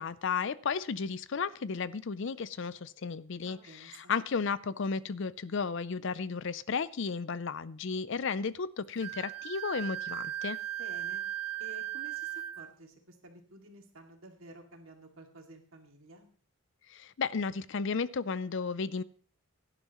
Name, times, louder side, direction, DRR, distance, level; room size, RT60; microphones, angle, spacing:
voice 1, 0.0-10.6 16.9-19.0, left 5 dB, 55° left, 17 dB, 0.5 m, -34 dB
voice 2, 3.4-4.1 10.8-11.2 11.6-16.3, right 2 dB, 70° right, 3 dB, 2.4 m, -52 dB
Wind instrument woodwind instrument, 9.0-12.7, right 12 dB, 85° right, 0.6 m, -37 dB
17.0 x 11.0 x 3.0 m, 0.42 s
head